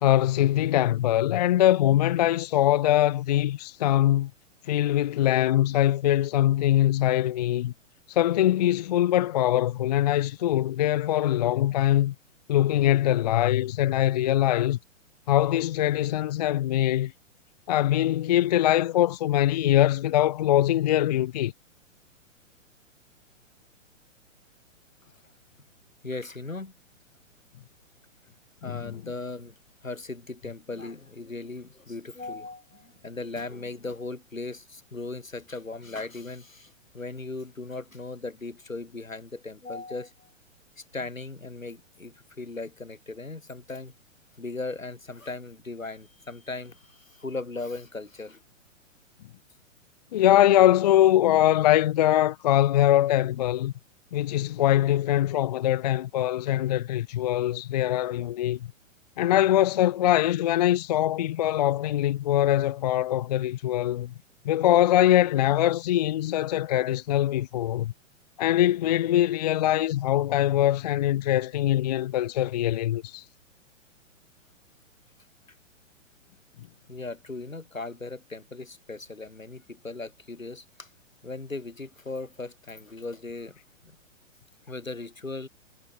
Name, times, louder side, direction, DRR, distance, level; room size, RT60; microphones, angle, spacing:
voice 1, 0.0-4.3 4.7-7.7 8.1-12.1 12.5-14.8 15.3-17.1 17.7-21.5 28.6-28.9 50.1-53.7 54.1-58.6 59.2-64.1 64.4-67.9 68.4-73.2, left 13 dB, 35° left, 0.5 m, -22 dB
voice 2, 26.0-26.7 28.6-29.5 29.8-40.3 40.8-43.9 44.4-48.4 76.9-80.9 81.2-83.6 83.8-83.9 84.7-85.5, left 3 dB, 85° left, 6.0 m, -38 dB
figure-of-eight pair, 115°, 39 cm